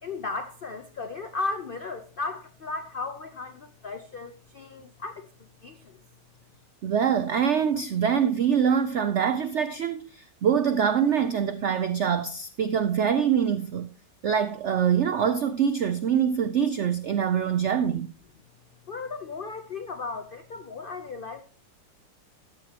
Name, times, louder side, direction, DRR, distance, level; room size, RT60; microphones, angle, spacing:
voice 1, 0.0-5.3 5.6-6.0 18.9-21.4, left 3 dB, 60° left, 0.5 m, -35 dB
voice 2, 6.8-13.9 14.2-18.1, right 8 dB, 80° right, 0.6 m, -24 dB
13.5 x 10.5 x 2.9 m
omnidirectional pair, 2.0 m